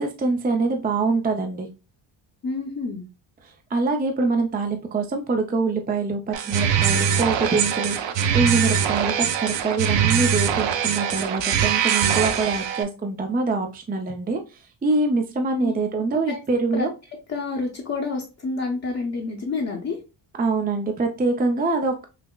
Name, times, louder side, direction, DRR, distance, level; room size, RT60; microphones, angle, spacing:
voice 1, 0.0-1.7 3.7-16.9 20.4-22.1, right 3 dB, 20° right, 4 dB, 0.4 m, -24 dB
voice 2, 2.4-3.0 15.6-15.7 16.3-16.4 16.7-16.8 17.3-20.0, left 3 dB, 35° left, -2 dB, 0.7 m, -28 dB
sound 1, 6.3-12.8, right 8 dB, 65° right, 0.6 m, -22 dB
5.7 x 2.0 x 2.2 m, 0.31 s
cardioid pair, 105°, 48 cm